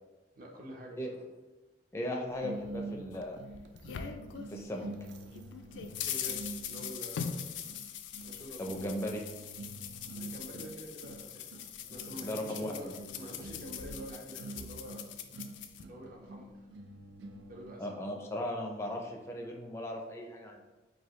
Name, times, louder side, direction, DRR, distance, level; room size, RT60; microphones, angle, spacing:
voice 1, 0.4-1.2 5.9-7.5 8.2-8.8 10.1-11.6 11.9-15.1 15.9-16.6 17.5-18.3, equal, 50° right, -1 dB, 0.8 m, -47 dB
voice 2, 1.9-3.4 4.5-4.9 8.6-9.2 12.2-12.9 17.8-20.6, left 1 dB, 15° left, 1 dB, 0.4 m, -37 dB
sound 1, 2.4-17.9, right 2 dB, 75° right, 0.4 m, -47 dB
sound 2, 3.1-5.0 5.3-15.8, left 8 dB, 90° left, 0.3 m, -42 dB
4.7 x 2.6 x 3.0 m, 1.1 s
head